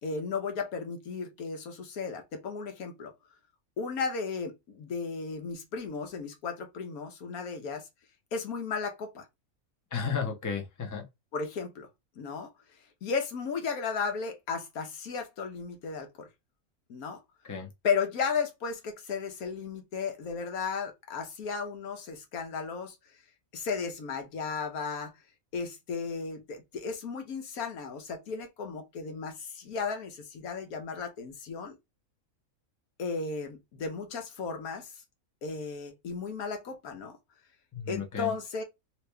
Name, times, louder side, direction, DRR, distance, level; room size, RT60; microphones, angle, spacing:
voice 1, 0.0-3.1 3.8-7.9 8.3-9.3 11.3-11.9 12.2-12.5 13.0-16.3 16.9-17.2 17.8-23.0 23.5-25.1 25.5-31.8 33.0-34.9 35.4-37.2 37.9-38.6, left 5 dB, 90° left, 1.4 m, -34 dB
voice 2, 9.9-11.1 17.5-17.7 37.7-38.3, left 6 dB, 20° left, 0.5 m, -33 dB
3.0 x 2.9 x 3.3 m
omnidirectional pair, 1.5 m